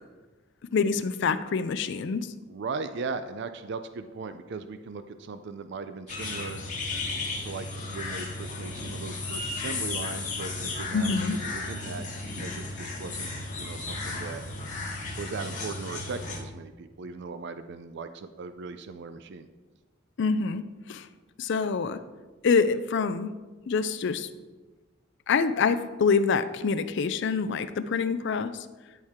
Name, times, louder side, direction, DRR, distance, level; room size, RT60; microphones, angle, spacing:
voice 1, 0.7-2.3 10.9-11.4 20.2-20.6 20.9-21.1 21.4-22.0 22.4-23.3 23.7-24.3 25.3-28.7, left 5 dB, 65° left, 11 dB, 0.4 m, -26 dB
voice 2, 2.5-6.6 7.4-12.0 12.4-14.5 15.2-19.5, right 4 dB, 60° right, 10 dB, 0.4 m, -38 dB
sound 1, 6.1-16.4, left 3 dB, 40° left, 2.0 m, -34 dB
13.0 x 4.6 x 3.6 m, 1.2 s
head